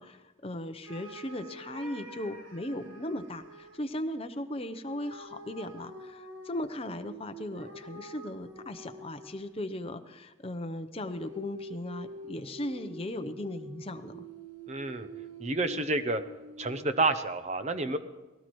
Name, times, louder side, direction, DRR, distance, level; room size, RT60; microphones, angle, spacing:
voice 1, 0.0-14.2, left 1 dB, 25° left, 8 dB, 0.7 m, -37 dB
sound 1, 0.8-3.8 4.9-9.6 11.1-17.2, equal, 65° right, 1.8 m, -46 dB
voice 2, 14.7-15.1 15.4-16.2 16.6-18.0, right 2 dB, 30° right, 10 dB, 0.8 m, -29 dB
20.0 x 17.0 x 3.1 m, 1.1 s
head